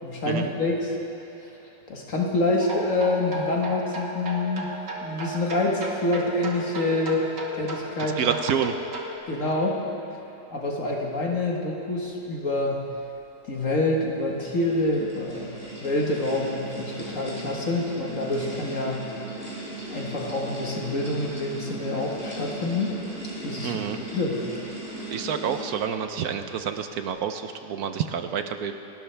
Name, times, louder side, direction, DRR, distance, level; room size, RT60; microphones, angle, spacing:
voice 1, 0.0-7.2 7.5-8.3 9.3-9.8 10.5-12.9 13.4-15.6 15.8-19.1 19.9-22.9 23.4-24.4, left 2 dB, 50° left, -1 dB, 1.8 m, -27 dB
sound 1, 2.6-9.2, right 2 dB, 85° right, 2.2 m, -35 dB
voice 2, 8.2-8.7 23.6-24.0 25.1-28.7, right 7 dB, 65° right, 8 dB, 1.1 m, -28 dB
sound 2, 13.9-26.0, right 1 dB, 5° right, 4.3 m, -38 dB
29.0 x 12.5 x 3.4 m, 2.8 s
omnidirectional pair, 1.8 m